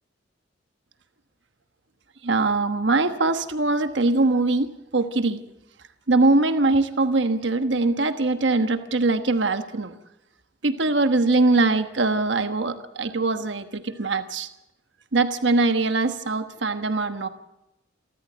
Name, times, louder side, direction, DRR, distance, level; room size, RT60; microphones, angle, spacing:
voice 1, 2.2-5.4 6.1-10.0 10.6-14.5 15.1-17.3, right 3 dB, 65° right, 9 dB, 1.2 m, -22 dB
28.0 x 13.5 x 8.0 m, 0.92 s
head